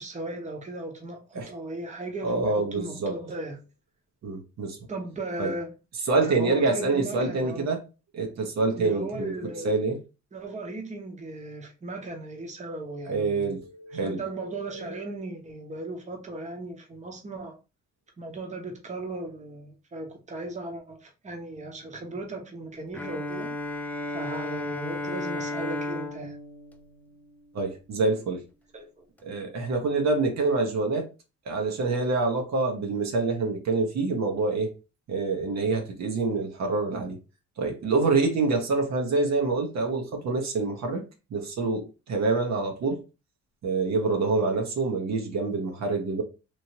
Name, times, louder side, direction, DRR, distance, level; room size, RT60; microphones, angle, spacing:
voice 1, 0.0-3.6 4.9-5.7 6.3-7.7 8.8-9.8 10.3-13.5 14.0-17.5 18.2-23.5 24.1-26.4 28.7-29.1, right 2 dB, 25° right, 0.9 m, -37 dB
voice 2, 2.2-3.2 4.2-4.8 5.4-5.5 6.1-7.8 8.1-9.3 9.6-10.0 13.1-15.0 27.5-28.4 29.2-31.1 31.5-34.7 35.1-37.2 37.6-41.1 41.3-43.0 43.6-46.2, right 3 dB, 65° right, 0.9 m, -26 dB
Bowed string instrument, 22.9-27.8, left 2 dB, 5° left, 0.4 m, -34 dB
3.1 x 2.7 x 2.8 m
cardioid pair, 90°, 30 cm